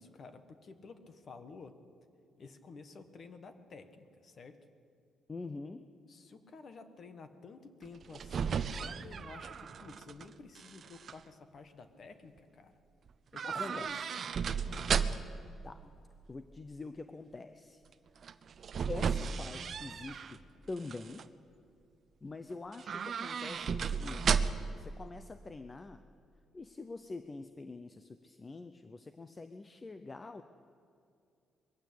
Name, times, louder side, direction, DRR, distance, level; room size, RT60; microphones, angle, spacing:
voice 1, 0.0-1.7 2.4-4.6 6.1-12.7 13.3-14.0, left 4 dB, 35° left, 9 dB, 1.4 m, -52 dB
voice 2, 5.3-5.8 13.5-14.1 15.6-15.8 16.3-17.8 18.9-20.4 20.7-21.3 22.2-24.5 24.8-26.0 26.5-30.4, left 3 dB, 20° left, 9 dB, 0.6 m, -45 dB
sound 1, 7.9-10.2 10.6-11.1 13.3-15.4 18.2-20.4 20.8-21.3 22.7-24.8 25.1-25.2, right 6 dB, 40° right, 0.6 m, -34 dB
22.0 x 15.5 x 8.5 m, 2.5 s
cardioid pair, 175°, 0 cm